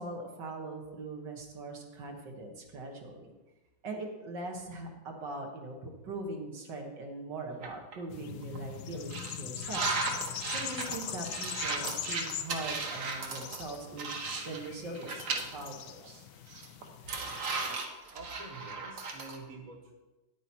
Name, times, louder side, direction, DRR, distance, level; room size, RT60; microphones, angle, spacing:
voice 1, 0.0-3.3 3.8-14.1 14.4-15.2 15.5-16.3, right 2 dB, 65° right, 1 dB, 2.0 m, -41 dB
sound 1, 7.6-8.0 8.4-8.6 9.1-14.7 15.0-15.7 16.0-16.1 16.5-19.4, right 4 dB, 50° right, 1.3 m, -36 dB
sound 2, 8.1-17.8, left 10 dB, 75° left, 1.2 m, -42 dB
voice 2, 18.1-19.9, right 3 dB, 25° right, 1 dB, 1.2 m, -47 dB
9.5 x 8.9 x 4.4 m, 1.1 s
omnidirectional pair, 2.1 m